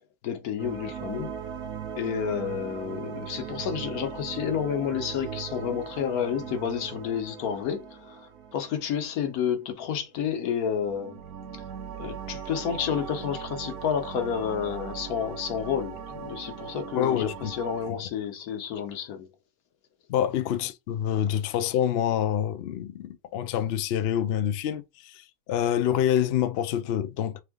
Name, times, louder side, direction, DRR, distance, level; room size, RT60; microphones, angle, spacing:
voice 1, 0.2-1.3 1.9-11.2 12.0-19.3, left 8 dB, 85° left, 1.3 m, -30 dB
sound 1, 0.6-9.6 10.8-17.9, right 8 dB, 80° right, 1.3 m, -39 dB
voice 2, 17.0-17.5 20.1-25.2 25.5-27.4, left 10 dB, 65° left, 0.6 m, -26 dB
3.6 x 3.5 x 3.5 m
omnidirectional pair, 1.5 m